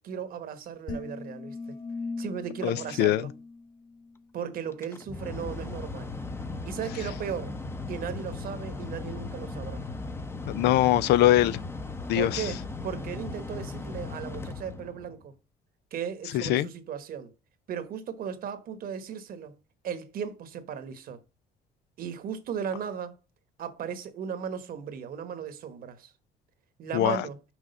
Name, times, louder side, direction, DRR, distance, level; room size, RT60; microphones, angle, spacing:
voice 1, 0.0-1.8 2.2-3.4 4.3-6.1 6.7-7.6 7.9-9.8 12.1-15.3 15.9-17.3 17.7-19.6 19.8-21.2 22.0-23.2 23.6-26.1 26.8-27.4, right 7 dB, 60° right, 1.2 m, -36 dB
sound 1, 0.9-4.2, left 3 dB, 55° left, 1.9 m, -39 dB
voice 2, 2.6-3.2 10.5-11.6 12.1-12.4 16.5-16.7 26.9-27.2, left 14 dB, 80° left, 0.5 m, -22 dB
Mechanical fan, 4.7-15.3, left 3 dB, 15° left, 0.7 m, -37 dB
6.2 x 4.9 x 5.2 m
cardioid pair, 110°, 17 cm